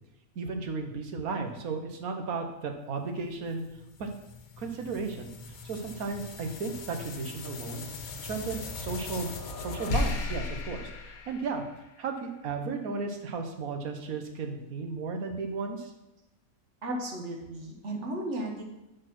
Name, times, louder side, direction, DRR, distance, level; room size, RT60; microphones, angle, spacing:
voice 1, 0.3-3.6 4.0-4.1 4.6-7.9 8.2-9.3 9.6-11.6 12.0-15.9, right 4 dB, 90° right, 5 dB, 1.4 m, -34 dB
sound 1, 3.5-12.1, left 4 dB, 85° left, 1.3 m, -37 dB
voice 2, 16.8-18.6, right 1 dB, 55° right, 1 dB, 1.6 m, -34 dB
6.3 x 5.2 x 6.0 m, 0.96 s
omnidirectional pair, 1.5 m